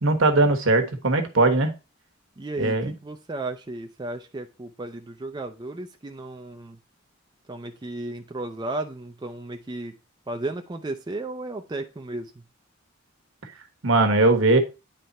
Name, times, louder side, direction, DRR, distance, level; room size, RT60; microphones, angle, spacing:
voice 1, 0.0-1.7 2.6-2.9 13.8-14.6, right 2 dB, 75° right, 7 dB, 1.2 m, -19 dB
voice 2, 2.4-6.8 7.5-9.9 10.3-12.3, right 2 dB, 20° right, 5 dB, 0.5 m, -34 dB
9.3 x 3.4 x 4.0 m, 0.28 s
head